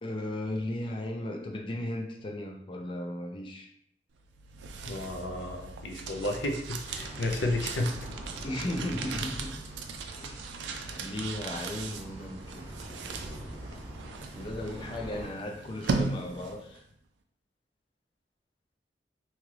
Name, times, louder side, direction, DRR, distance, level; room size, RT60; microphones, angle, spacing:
voice 1, 0.0-3.7 8.4-9.5 10.2-10.5 11.0-13.0 14.3-16.8, left 1 dB, 30° left, 2 dB, 0.4 m, -36 dB
sound 1, 4.2-16.8, right 4 dB, 90° right, 0.4 m, -38 dB
voice 2, 4.8-7.9, left 2 dB, 90° left, 3 dB, 0.5 m, -32 dB
sound 2, 6.8-15.3, equal, 15° right, 0.8 m, -44 dB
2.8 x 2.3 x 3.1 m, 0.72 s
head